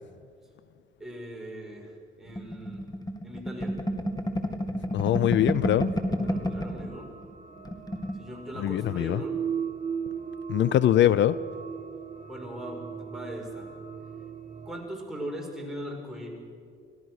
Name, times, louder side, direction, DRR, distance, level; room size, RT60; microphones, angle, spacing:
voice 1, 1.0-1.9 2.2-2.9 3.2-3.7 6.2-7.1 8.1-9.4 12.3-13.7 14.6-16.3, equal, ahead, -1 dB, 6.0 m, -39 dB
sound 1, 2.3-6.9 7.2-7.3 7.6-8.2, equal, 20° left, 2.2 m, -30 dB
voice 2, 4.9-5.9 8.6-9.2 10.5-11.4, left 12 dB, 65° left, 18 dB, 0.5 m, -22 dB
sound 2, 5.3-14.8, right 7 dB, 40° right, 1.7 m, -38 dB
25.5 x 17.0 x 6.4 m, 2.4 s
cardioid pair, 90°, 20 cm